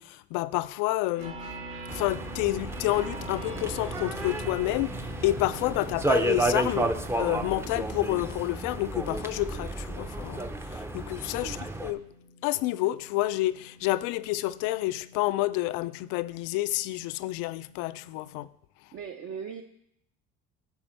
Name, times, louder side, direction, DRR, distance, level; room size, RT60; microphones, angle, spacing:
voice 1, 0.0-1.5 1.9-12.1 12.4-18.5, left 17 dB, 75° left, 0.4 m, -29 dB
sound 1, 1.1-18.4, right 1 dB, 70° right, 2.2 m, -46 dB
sound 2, 1.9-11.9, right 2 dB, 10° right, 0.5 m, -32 dB
voice 2, 18.9-19.6, right 7 dB, 50° right, 0.6 m, -39 dB
11.5 x 4.4 x 4.3 m
supercardioid pair, 100°, 30 cm